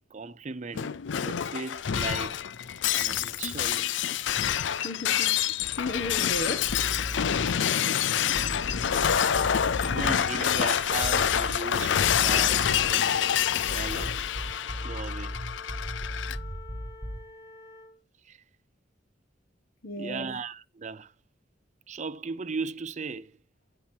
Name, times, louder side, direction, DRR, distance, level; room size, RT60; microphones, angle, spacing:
voice 1, 0.1-0.9 1.2-2.4 2.9-3.9 9.8-13.1 13.7-14.2 14.8-15.4 18.2-18.4 20.0-21.1 21.9-23.4, right 4 dB, 40° right, 0.6 m, -37 dB
Shatter, 0.8-16.4, left 9 dB, 80° left, 0.5 m, -27 dB
voice 2, 4.8-6.8 19.8-20.3, left 1 dB, 50° left, 1.5 m, -35 dB
sound 1, 6.7-7.7 8.3-10.2 11.0-11.7 12.0-13.0 13.6-17.3, equal, 5° right, 1.2 m, -37 dB
Wind instrument woodwind instrument, 14.3-18.0, left 3 dB, 25° left, 2.1 m, -48 dB
17.0 x 5.7 x 2.8 m
head